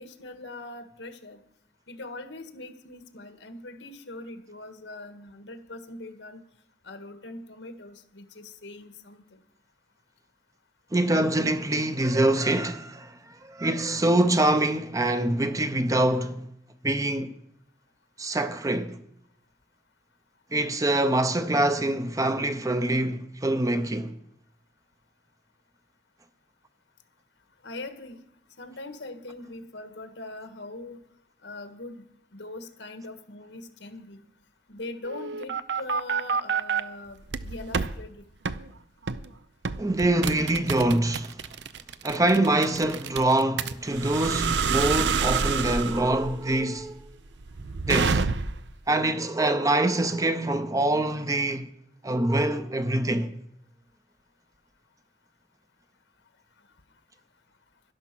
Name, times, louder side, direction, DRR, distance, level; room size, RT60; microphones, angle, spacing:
voice 1, 0.0-1.4 1.9-6.4 6.8-9.4 27.6-28.2 28.6-31.0 31.4-34.2 34.7-38.3 43.6-43.7, left 2 dB, 85° left, 1.5 m, -41 dB
voice 2, 10.9-16.5 16.8-17.3 18.2-19.0 20.5-24.1 39.8-41.4 42.0-47.0 47.9-48.2 48.9-51.7 52.0-53.3, right 1 dB, 20° right, 0.6 m, -25 dB
sound 1, 35.0-36.8 37.3-37.9 38.5-38.6 39.1-39.3 39.7-48.7, right 5 dB, 75° right, 0.6 m, -28 dB
12.0 x 11.5 x 6.0 m
head